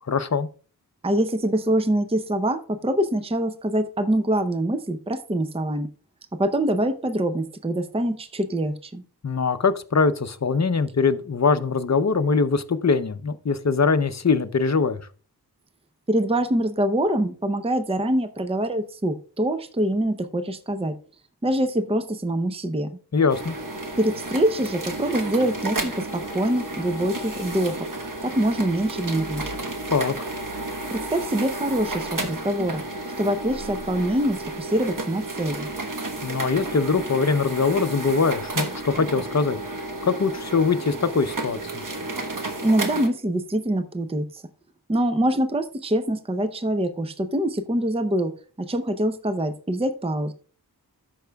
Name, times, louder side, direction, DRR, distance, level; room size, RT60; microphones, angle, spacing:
voice 1, 0.1-0.5 9.2-15.0 23.1-23.5 29.9-30.1 36.2-39.6 40.0-41.8, left 4 dB, 45° left, 0.7 m, -22 dB
voice 2, 1.0-5.9 6.3-9.0 16.1-20.9 21.4-22.9 24.0-27.9 28.2-29.5 30.9-32.8 33.2-35.7 42.6-44.4 44.9-48.3 48.6-50.3, right 1 dB, 15° right, 0.6 m, -24 dB
sound 1, 23.3-43.1, right 2 dB, 50° right, 1.2 m, -32 dB
13.0 x 5.7 x 2.3 m
wide cardioid pair, 45°, 40 cm